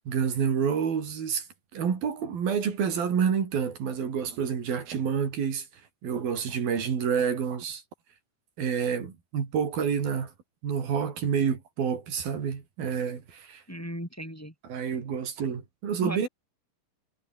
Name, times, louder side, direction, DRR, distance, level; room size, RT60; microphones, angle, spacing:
voice 1, 0.1-1.5 1.7-5.7 6.0-7.8 8.6-10.3 10.6-13.6 14.6-16.3, right 7 dB, 85° right, 5.4 m, -28 dB
voice 2, 13.7-14.5 16.0-16.3, equal, 5° left, 4.3 m, -36 dB
omnidirectional pair, 4.1 m